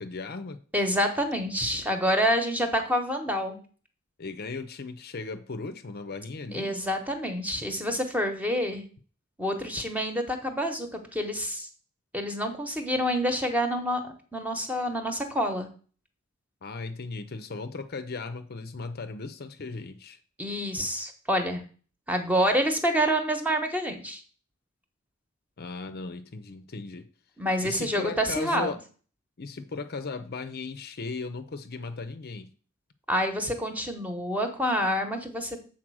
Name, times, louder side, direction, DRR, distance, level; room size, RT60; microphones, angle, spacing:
voice 1, 0.0-0.6 4.2-6.8 16.6-20.2 25.6-27.1 27.6-28.8 29.4-32.5, left 3 dB, 50° left, 10 dB, 0.6 m, -37 dB
voice 2, 0.7-3.6 6.5-8.8 9.4-11.7 12.1-15.7 20.4-21.6 22.1-24.2 27.4-28.7 33.1-35.6, equal, 10° right, 5 dB, 1.1 m, -27 dB
7.5 x 4.3 x 6.2 m, 0.40 s
head